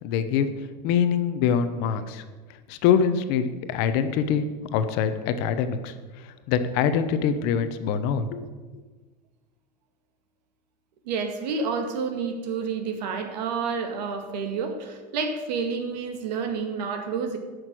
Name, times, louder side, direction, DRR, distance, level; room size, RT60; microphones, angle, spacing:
voice 1, 0.0-0.5 0.8-2.2 2.7-4.5 4.7-8.5, left 7 dB, 50° left, 10 dB, 0.9 m, -24 dB
voice 2, 11.1-17.4, right 5 dB, 80° right, 5 dB, 2.0 m, -29 dB
11.0 x 6.5 x 7.7 m, 1.4 s
supercardioid pair, 155°, 21 cm